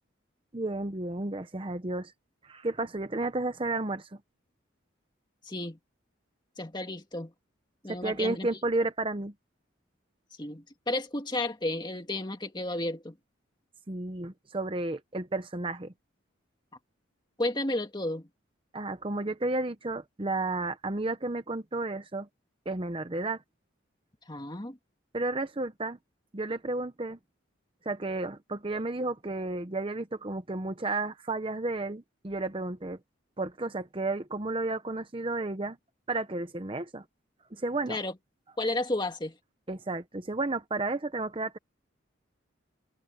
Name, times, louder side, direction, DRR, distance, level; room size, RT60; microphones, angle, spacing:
voice 1, 0.5-2.1 2.4-4.1 7.9-9.3 13.9-15.9 18.7-22.3 22.7-23.4 25.1-26.0 26.3-27.2 27.8-33.0 33.4-35.8 36.1-37.0 37.5-38.0 39.7-41.6, right 2 dB, 25° right, 0.8 m, -32 dB
voice 2, 5.5-5.8 6.6-7.3 7.8-8.5 10.4-13.1 17.4-18.3 24.3-24.8 37.9-38.1 38.6-39.4, left 2 dB, 20° left, 2.1 m, -32 dB
head